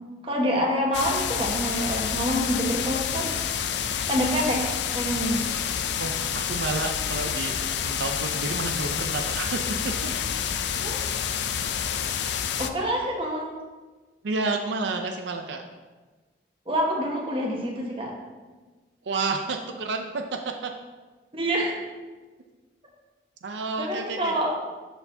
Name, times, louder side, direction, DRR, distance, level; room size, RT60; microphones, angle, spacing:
voice 1, 0.2-3.3 4.1-4.6 4.9-5.4 10.8-11.1 12.6-13.5 16.7-18.1 21.3-21.7 23.8-24.5, equal, 30° right, -2 dB, 1.2 m, -26 dB
sound 1, 0.9-12.7, left 8 dB, 75° left, 0.4 m, -28 dB
voice 2, 6.0-9.7 10.0-10.1 14.2-15.6 19.0-20.2 20.6-20.7 23.4-24.4, right 3 dB, 85° right, 4 dB, 0.5 m, -30 dB
12.5 x 4.5 x 2.7 m, 1.3 s
head